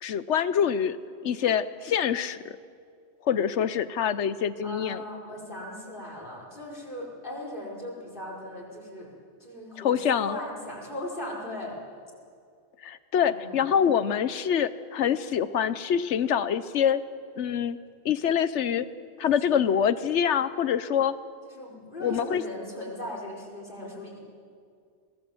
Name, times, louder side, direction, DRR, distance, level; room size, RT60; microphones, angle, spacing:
voice 1, 0.0-1.0 1.2-2.5 3.2-5.0 9.8-10.4 12.8-17.0 17.4-17.8 18.0-18.9 19.2-21.1 22.0-22.4, left 8 dB, 75° left, 14 dB, 1.1 m, -25 dB
voice 2, 4.6-9.1 9.4-11.8 13.2-13.6 19.4-19.6 21.4-24.2, left 1 dB, 45° left, -2 dB, 5.3 m, -38 dB
22.5 x 19.0 x 7.8 m, 2.3 s
omnidirectional pair, 1.2 m